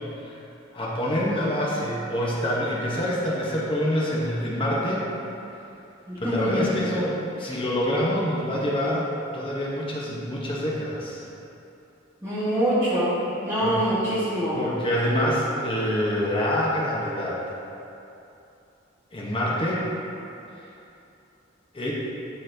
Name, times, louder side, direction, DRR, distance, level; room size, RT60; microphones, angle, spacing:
voice 1, 0.7-5.0 6.2-11.2 13.6-13.8 14.5-17.4 19.1-19.8 21.7-21.9, equal, 30° left, -5 dB, 0.9 m, -26 dB
voice 2, 6.1-6.7 12.2-14.6, right 1 dB, 15° right, -12 dB, 1.4 m, -25 dB
12.0 x 4.1 x 2.7 m, 2.8 s
head